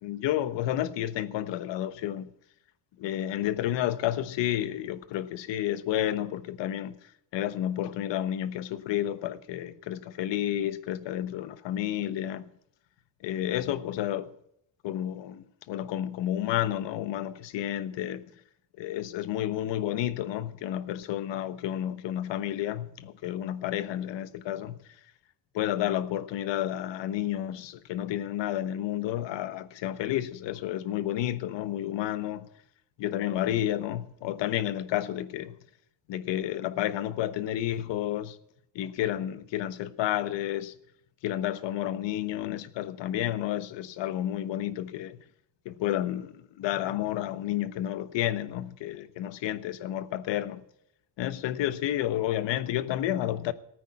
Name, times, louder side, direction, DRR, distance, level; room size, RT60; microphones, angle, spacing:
voice 1, 0.0-2.3 3.0-7.0 7.3-12.4 13.2-14.3 14.8-18.2 18.8-24.8 25.5-32.5 33.0-35.5 36.1-38.4 38.7-40.7 41.2-45.2 45.6-50.6 51.2-53.5, left 12 dB, 70° left, 1.2 m, -31 dB
15.0 x 9.2 x 8.6 m
cardioid pair, 120°, 44 cm